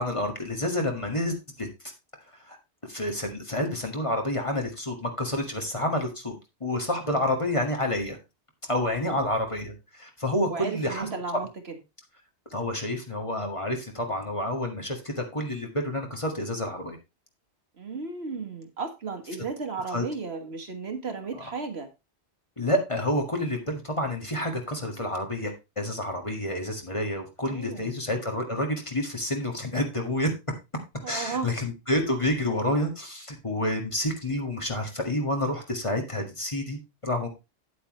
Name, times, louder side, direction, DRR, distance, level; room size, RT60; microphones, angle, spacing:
voice 1, 0.0-1.7 2.4-2.6 2.9-6.3 6.6-8.2 8.7-11.1 12.5-17.0 19.9-20.1 21.3-21.6 22.6-30.3 31.1-37.3, left 1 dB, 25° left, 1.8 m, -29 dB
voice 2, 10.5-11.8 17.8-21.9 27.5-27.8 31.0-31.5, right 4 dB, 60° right, 1.7 m, -34 dB
9.5 x 8.4 x 3.1 m
omnidirectional pair, 1.2 m